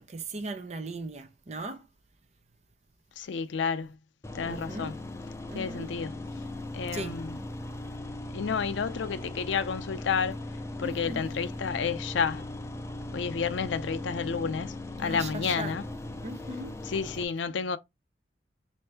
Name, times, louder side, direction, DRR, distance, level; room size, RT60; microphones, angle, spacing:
voice 1, 0.0-1.9 4.4-4.9 5.5-5.9 6.9-7.2 10.8-11.3 15.0-15.8 16.2-16.8, right 2 dB, 35° right, 0.6 m, -38 dB
voice 2, 3.2-4.0 4.3-5.0 5.5-6.2 6.7-7.4 8.3-10.4 10.8-12.4 13.1-15.8 16.9-17.8, left 6 dB, 85° left, 0.4 m, -31 dB
sound 1, 4.2-17.2, left 1 dB, 15° left, 0.4 m, -39 dB
4.2 x 2.6 x 3.3 m
head